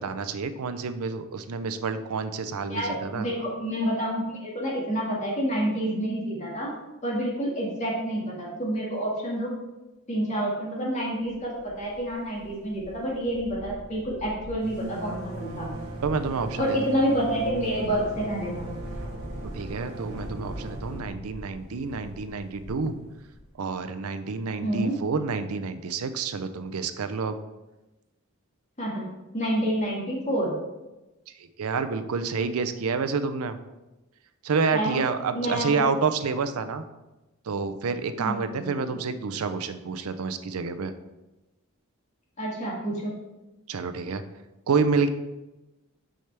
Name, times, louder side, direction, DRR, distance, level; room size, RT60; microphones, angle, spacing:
voice 1, 0.0-3.3 16.0-16.8 19.5-22.9 23.6-27.4 31.6-33.6 34.4-36.8 37.5-40.9 43.7-44.2 44.7-45.1, right 5 dB, 85° right, 10 dB, 0.5 m, -28 dB
voice 2, 2.7-6.7 7.0-9.5 10.1-15.7 16.6-18.7 24.6-24.9 28.8-29.1 29.3-30.5 34.7-35.0 35.3-35.8 38.2-39.0 42.4-43.1, right 1 dB, 35° left, -4 dB, 1.9 m, -28 dB
sound 1, 11.5-12.1 12.3-12.5 12.7-23.4, right 1 dB, 50° right, 2.3 m, -38 dB
6.3 x 5.8 x 3.4 m, 1.0 s
head